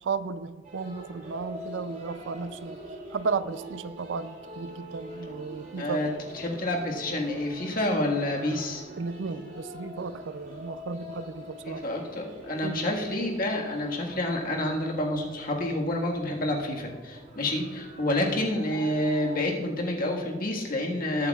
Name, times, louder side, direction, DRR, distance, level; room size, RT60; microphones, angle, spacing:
voice 1, 0.0-2.8 3.1-6.1 9.0-11.8 12.6-12.9, right 4 dB, 85° right, 14 dB, 0.5 m, -34 dB
sound 1, 0.6-19.4, equal, 45° right, 2.9 m, -44 dB
voice 2, 5.8-6.1 6.3-8.8 11.6-21.3, left 1 dB, 50° left, 0 dB, 1.7 m, -28 dB
21.0 x 8.4 x 2.4 m, 1.4 s
head